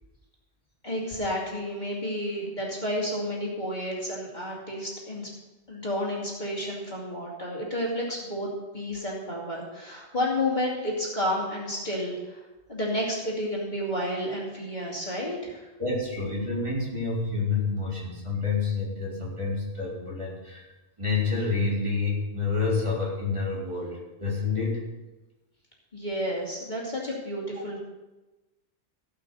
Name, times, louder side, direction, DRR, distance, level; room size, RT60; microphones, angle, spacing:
voice 1, 0.8-5.3 5.7-8.5 8.7-12.4 12.7-15.7 25.9-27.8, left 1 dB, 40° left, -4 dB, 2.9 m, -31 dB
voice 2, 15.8-20.6 21.0-24.8, left 4 dB, 25° right, -5 dB, 3.9 m, -28 dB
17.0 x 5.9 x 6.9 m, 1.1 s
omnidirectional pair, 1.1 m